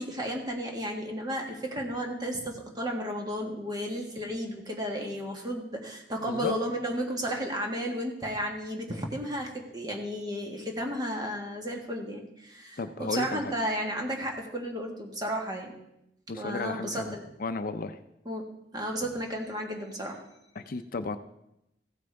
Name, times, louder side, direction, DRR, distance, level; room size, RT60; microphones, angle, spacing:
voice 1, 0.0-15.7 16.3-17.2 18.2-18.4 18.7-20.2, equal, 25° right, 1 dB, 1.6 m, -33 dB
voice 2, 12.8-13.5 16.3-18.0 20.6-21.2, left 3 dB, 55° left, 9 dB, 0.5 m, -34 dB
15.5 x 9.0 x 3.4 m, 0.84 s
head